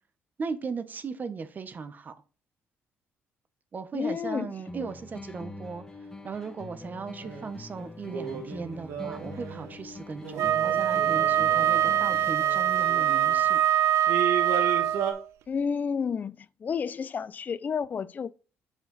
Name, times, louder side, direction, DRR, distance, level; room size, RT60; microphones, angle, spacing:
voice 1, 0.4-2.1 3.7-5.8 6.2-13.6, right 5 dB, 35° right, 1.0 m, -37 dB
voice 2, 3.9-4.5 4.8-4.9 15.5-18.3, left 6 dB, 35° left, 0.4 m, -31 dB
sound 1, 4.7-12.6, left 2 dB, 15° left, 1.2 m, -44 dB
sound 2, 7.2-7.5 8.1-9.8 10.2-13.4 14.1-15.1, right 7 dB, 90° right, 1.7 m, -35 dB
Wind instrument woodwind instrument, 10.4-15.2, right 11 dB, 70° right, 0.4 m, -24 dB
8.1 x 4.8 x 4.0 m
cardioid pair, 100°, 5 cm